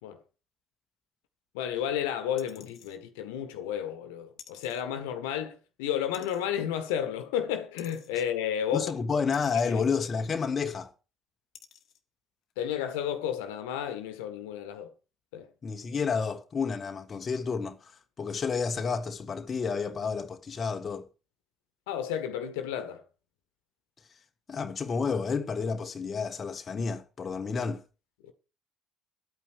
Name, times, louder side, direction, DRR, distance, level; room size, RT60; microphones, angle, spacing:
voice 1, 1.5-8.9 9.5-9.8 12.6-14.9 15.3-15.5 21.9-23.0 28.2-28.3, left 9 dB, 70° left, 1.6 m, -32 dB
sound 1, 2.4-3.0 4.4-4.8 6.1-6.5 7.8-8.1 9.3-9.7 10.8-10.9 11.5-12.0 12.5-12.6, left 9 dB, 55° left, 1.6 m, -52 dB
voice 2, 8.7-10.9 15.6-17.9 18.2-21.1 24.5-27.8, left 5 dB, 35° left, 1.5 m, -30 dB
12.0 x 8.9 x 6.4 m
figure-of-eight pair, 55°, 0 cm